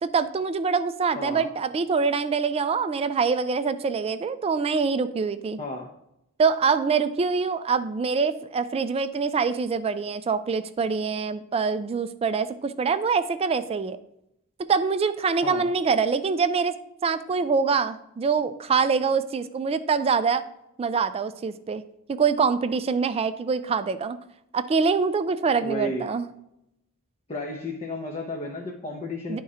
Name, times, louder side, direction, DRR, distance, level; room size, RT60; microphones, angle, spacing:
voice 1, 0.0-5.6 6.4-14.0 14.7-16.7 17.0-20.4 20.8-21.8 22.1-24.2 24.5-26.3 29.3-29.4, right 5 dB, 25° right, 11 dB, 0.3 m, -24 dB
voice 2, 1.2-1.5 5.6-5.9 15.4-15.7 25.6-26.1 27.3-29.4, left 1 dB, 30° left, 0 dB, 0.7 m, -32 dB
10.0 x 3.7 x 4.2 m, 0.82 s
head